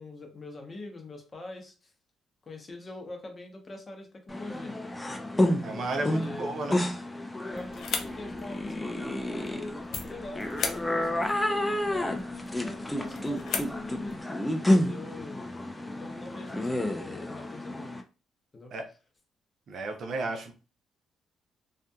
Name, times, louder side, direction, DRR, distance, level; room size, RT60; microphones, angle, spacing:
voice 1, 0.0-1.9 2.4-4.8 5.7-6.6 7.5-10.5 11.0-14.2 14.6-15.5 16.0-18.0 18.5-18.7, left 2 dB, 30° left, 3 dB, 0.8 m, -43 dB
sound 1, 4.3-18.0, left 1 dB, 15° left, 0.4 m, -30 dB
voice 2, 5.6-6.8 11.1-11.2 18.7-18.8 19.7-20.5, right 2 dB, 60° right, 4 dB, 0.6 m, -34 dB
sound 2, 7.5-14.2, left 5 dB, 70° left, 0.4 m, -39 dB
2.6 x 2.4 x 2.2 m, 0.34 s
cardioid pair, 90°, 0 cm